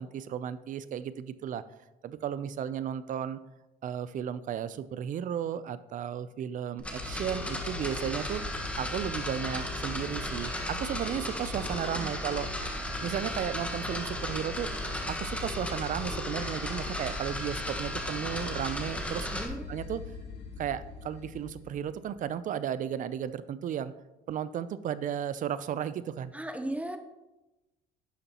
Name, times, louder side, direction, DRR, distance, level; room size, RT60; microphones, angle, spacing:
voice 1, 0.0-1.6 2.0-3.4 3.8-8.4 8.8-12.5 13.0-14.7 15.1-19.3 19.7-20.0 20.6-23.9 24.3-26.3, right 9 dB, 50° right, 15 dB, 0.5 m, -34 dB
sound 1, 6.8-19.5, left 1 dB, 5° left, 1.4 m, -36 dB
sound 2, 6.9-22.3, left 5 dB, 85° left, 1.4 m, -42 dB
voice 2, 19.3-19.8 26.3-27.0, right 1 dB, 10° right, 7 dB, 0.8 m, -37 dB
11.0 x 6.9 x 3.0 m, 1.0 s
cardioid pair, 110°, 17 cm